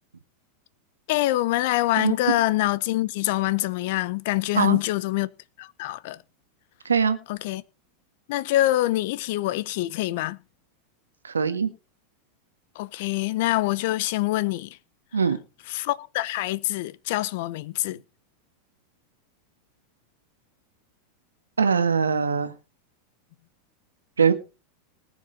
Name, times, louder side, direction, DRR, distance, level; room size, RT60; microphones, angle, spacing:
voice 1, 1.1-5.3 5.6-6.2 7.3-7.6 8.3-10.4 12.7-14.8 15.7-18.0, left 17 dB, 60° left, 0.9 m, -25 dB
voice 2, 6.8-7.2 11.2-11.7 15.1-15.4 21.6-22.5 24.2-24.3, right 6 dB, 85° right, 1.4 m, -21 dB
20.0 x 7.1 x 3.9 m
hypercardioid pair, 90°, 0 cm